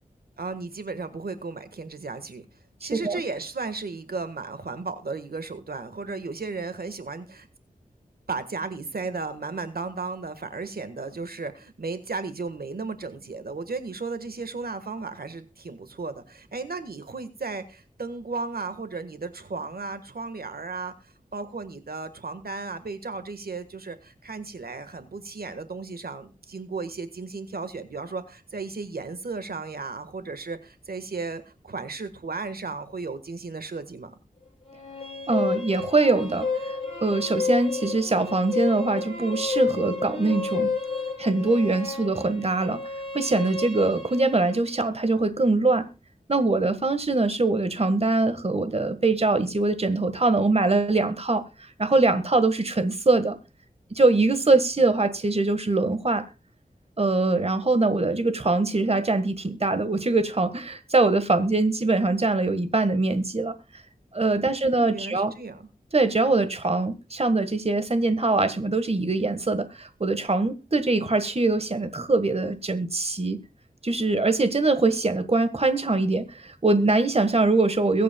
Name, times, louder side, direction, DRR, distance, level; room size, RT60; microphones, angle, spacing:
voice 1, 0.4-2.4 2.8-7.5 8.3-34.1 64.4-65.7, right 4 dB, 80° right, 1.5 m, -35 dB
voice 2, 2.8-3.2 35.3-40.7 41.2-45.9 46.3-53.4 53.9-56.2 57.0-63.5 64.1-65.3 65.9-73.4 73.8-78.0, right 3 dB, 40° right, 1.5 m, -23 dB
sound 1, 34.7-44.6, left 4 dB, 35° left, 7.4 m, -31 dB
22.5 x 8.5 x 2.3 m
wide cardioid pair, 60°, 16 cm